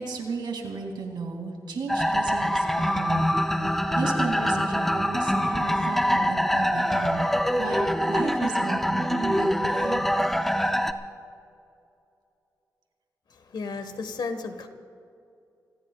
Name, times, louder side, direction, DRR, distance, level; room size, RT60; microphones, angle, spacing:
voice 1, 0.0-3.6 3.9-7.3 7.6-10.1, right 4 dB, 90° right, 2 dB, 2.7 m, -34 dB
sound 1, 1.9-10.9, equal, 5° left, 0.7 m, -24 dB
voice 2, 13.3-14.7, left 4 dB, 75° left, 8 dB, 1.5 m, -34 dB
27.5 x 18.5 x 2.4 m, 2.5 s
cardioid pair, 85°, 7 cm